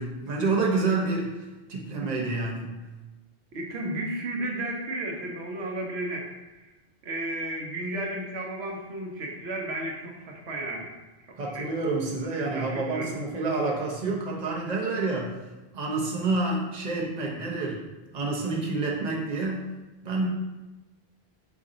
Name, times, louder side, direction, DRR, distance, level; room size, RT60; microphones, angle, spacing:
voice 1, 0.0-2.7 11.4-15.3 15.7-17.8 18.1-19.7 20.0-20.3, right 3 dB, 45° right, -2 dB, 0.8 m, -28 dB
voice 2, 3.5-6.7 7.0-10.9 11.5-11.7 12.5-13.1, right 1 dB, 75° right, 0 dB, 1.0 m, -33 dB
4.0 x 2.6 x 3.7 m, 1.1 s
omnidirectional pair, 1.1 m